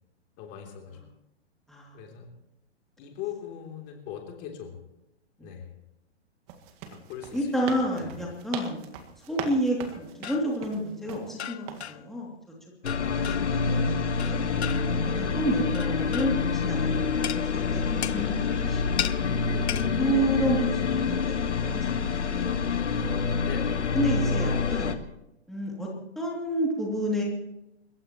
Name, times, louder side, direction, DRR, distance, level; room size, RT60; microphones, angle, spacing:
voice 1, 0.4-1.0 1.9-2.3 3.0-4.8 5.4-5.7 6.9-7.7 8.0-8.1 13.0-13.6 19.4-19.8 23.4-23.8, left 8 dB, 30° left, 2 dB, 3.2 m, -40 dB
sound 1, 6.5-11.3 11.7-11.9, right 7 dB, 30° right, 1.8 m, -40 dB
voice 2, 7.3-8.8 9.3-12.3 13.6-13.9 14.2-14.6 15.2-18.8 20.0-23.2 23.9-25.0 25.5-25.9 26.1-27.2, equal, ahead, -4 dB, 2.7 m, -30 dB
sound 2, 9.9-10.5 11.4-12.1 12.9-13.6 14.2-15.0 15.7-16.5 17.2-17.4 18.0-18.3 19.0-19.2 19.7-19.9, left 10 dB, 65° left, 0.8 m, -36 dB
sound 3, 12.8-25.0, left 5 dB, 80° left, 1.6 m, -27 dB
30.0 x 15.5 x 3.1 m, 0.89 s
hypercardioid pair, 135°, 35 cm